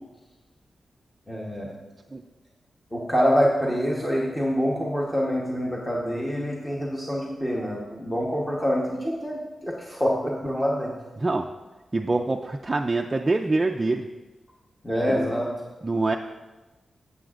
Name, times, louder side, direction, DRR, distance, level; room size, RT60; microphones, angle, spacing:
voice 1, 1.3-1.7 2.9-10.9 14.8-15.5, equal, 10° left, -4 dB, 1.1 m, -26 dB
voice 2, 11.9-14.1 15.1-15.2 15.8-16.2, right 2 dB, 25° right, 2 dB, 0.4 m, -25 dB
15.0 x 6.9 x 2.5 m, 1.2 s
wide cardioid pair, 130°, 0 cm